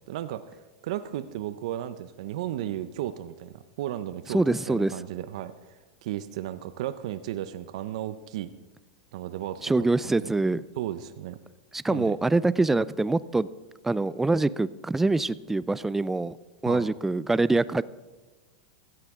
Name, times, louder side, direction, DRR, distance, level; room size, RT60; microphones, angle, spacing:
voice 1, 0.1-0.5 0.8-8.5 9.1-9.9 10.2-10.3 10.8-11.4 11.9-12.1 16.7-16.9, right 12 dB, 70° right, 12 dB, 0.6 m, -34 dB
voice 2, 4.3-4.9 9.6-10.6 11.7-13.5 13.8-16.4 16.6-17.8, right 2 dB, 10° right, 18 dB, 0.4 m, -24 dB
17.0 x 13.5 x 3.7 m, 1.2 s
hypercardioid pair, 115°, 4 cm